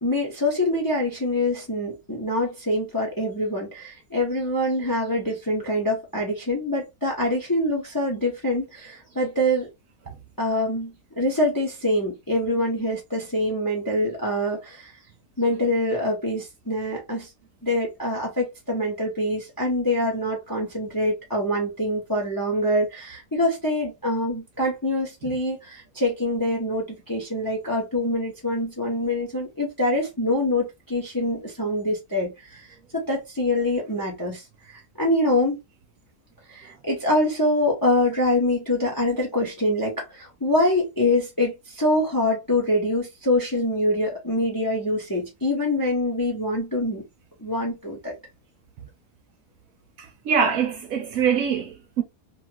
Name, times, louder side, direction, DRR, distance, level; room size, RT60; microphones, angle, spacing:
voice 1, 0.0-9.7 10.4-14.9 15.4-17.3 17.6-32.7 32.9-34.4 34.7-35.6 36.5-47.0 47.4-48.2, left 1 dB, 20° left, 0.6 m, -25 dB
voice 2, 50.0-52.0, right 7 dB, 70° right, 0.9 m, -24 dB
2.8 x 2.3 x 2.8 m
omnidirectional pair, 1.8 m